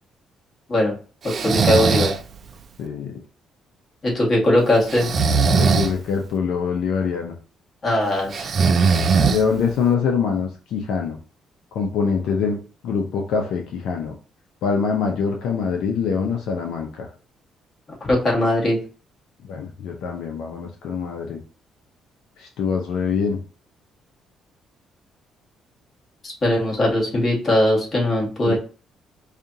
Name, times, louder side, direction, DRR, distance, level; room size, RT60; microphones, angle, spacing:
voice 1, 1.2-2.1 4.0-5.1 7.8-8.5 18.1-18.8 26.2-28.6, left 1 dB, 35° left, -3 dB, 1.8 m, -20 dB
Breathing, 1.3-2.2 4.9-5.9 8.3-9.7, right 5 dB, 45° right, 0.5 m, -19 dB
voice 2, 2.8-3.2 5.5-7.3 9.3-11.2 11.7-12.6 12.8-14.1 14.6-17.1 19.5-21.4 22.4-23.4 28.5-28.6, left 6 dB, 80° left, 2 dB, 0.7 m, -24 dB
5.0 x 2.4 x 2.8 m, 0.37 s
cardioid pair, 115°, 0 cm